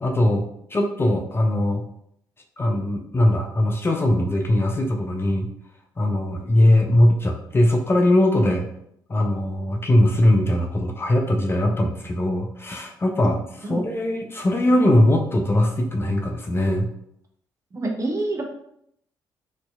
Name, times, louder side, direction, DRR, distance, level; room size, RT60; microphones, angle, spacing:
voice 1, 0.0-1.8 2.6-5.5 6.0-8.7 9.1-13.4 13.7-16.9, left 1 dB, 25° left, 2 dB, 0.4 m, -20 dB
voice 2, 17.7-18.4, right 2 dB, 30° right, 2 dB, 0.6 m, -26 dB
2.6 x 2.1 x 2.2 m, 0.73 s
figure-of-eight pair, 40°, 10 cm